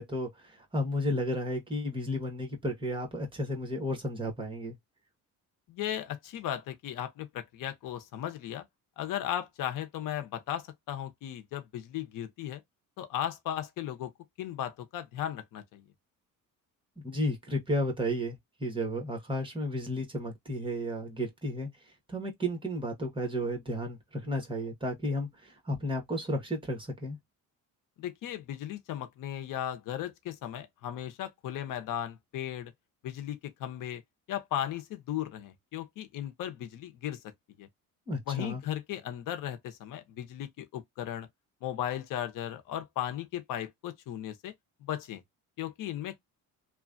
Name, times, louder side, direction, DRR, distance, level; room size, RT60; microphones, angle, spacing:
voice 1, 0.0-4.8 17.0-21.7 22.1-27.2 38.1-38.6, equal, 15° right, 1.3 m, -33 dB
voice 2, 5.7-8.6 9.0-12.6 13.0-14.1 14.4-15.8 28.0-32.7 33.0-34.0 34.3-37.2 37.6-37.7 38.3-41.3 41.6-44.5 44.8-45.2 45.6-46.2, left 11 dB, 70° left, 0.7 m, -36 dB
3.0 x 2.3 x 2.5 m
cardioid pair, 115°, 33 cm